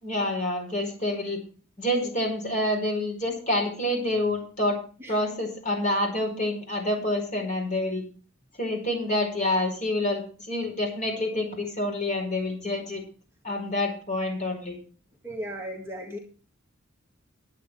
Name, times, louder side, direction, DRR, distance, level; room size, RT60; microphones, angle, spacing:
voice 1, 0.0-1.4 1.8-4.8 5.1-8.0 8.6-13.0 13.4-14.8, left 1 dB, 35° left, 1 dB, 4.9 m, -27 dB
voice 2, 15.2-16.2, equal, 10° right, 0 dB, 1.7 m, -36 dB
11.0 x 8.8 x 6.1 m, 0.39 s
head